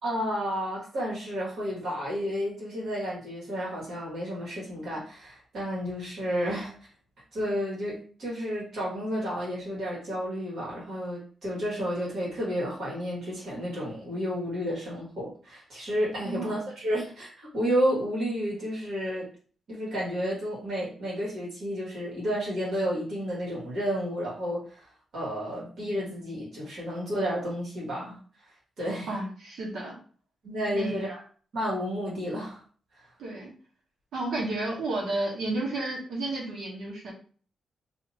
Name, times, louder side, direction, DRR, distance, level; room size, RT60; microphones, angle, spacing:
voice 1, 0.0-6.7 7.3-19.3 19.7-28.2 28.8-29.1 30.4-31.2 31.5-32.6, equal, 60° right, -6 dB, 1.8 m, -31 dB
voice 2, 16.2-16.6 29.1-30.0 30.7-31.0 33.2-33.5 34.1-37.1, right 2 dB, 80° right, -3 dB, 1.4 m, -32 dB
2.8 x 2.8 x 4.1 m, 0.42 s
wide cardioid pair, 140°, 0 cm